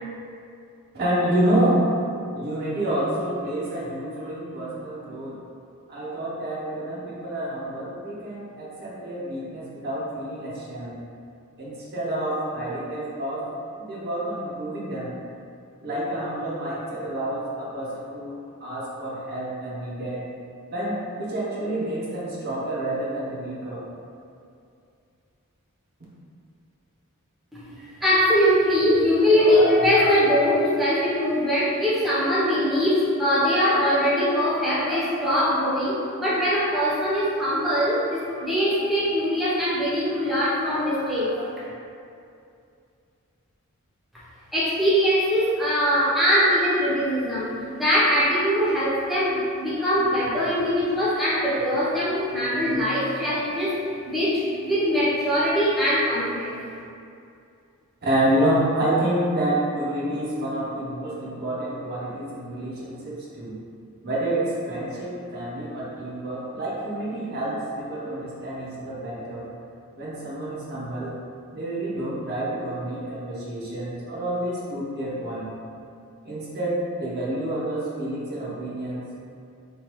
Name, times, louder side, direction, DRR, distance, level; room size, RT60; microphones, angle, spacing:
voice 1, 0.9-1.8 2.3-5.4 5.9-11.0 11.6-13.5 13.8-15.1 15.8-20.3 20.7-23.9 58.0-63.6 64.0-69.5 70.0-71.1 71.5-75.5 76.2-79.2, right 1 dB, 45° right, -7 dB, 0.7 m, -28 dB
voice 2, 27.5-41.6 44.5-53.8 54.1-56.6, equal, ahead, -10 dB, 0.6 m, -22 dB
3.1 x 2.2 x 3.0 m, 2.5 s
head